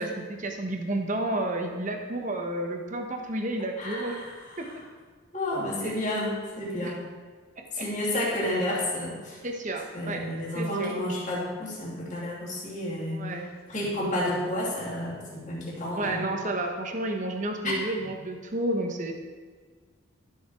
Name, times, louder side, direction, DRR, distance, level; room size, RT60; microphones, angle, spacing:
voice 1, 0.0-4.2 4.6-4.7 5.8-6.0 6.7-7.0 7.8-7.9 9.4-10.3 10.5-11.0 13.1-13.5 16.0-19.1, right 1 dB, 35° right, 3 dB, 1.1 m, -31 dB
voice 2, 3.8-4.7 5.3-7.0 7.7-9.4 9.9-13.2 13.7-16.3 17.6-17.7, left 1 dB, 35° left, -5 dB, 2.8 m, -31 dB
13.0 x 6.5 x 4.7 m, 1.5 s
head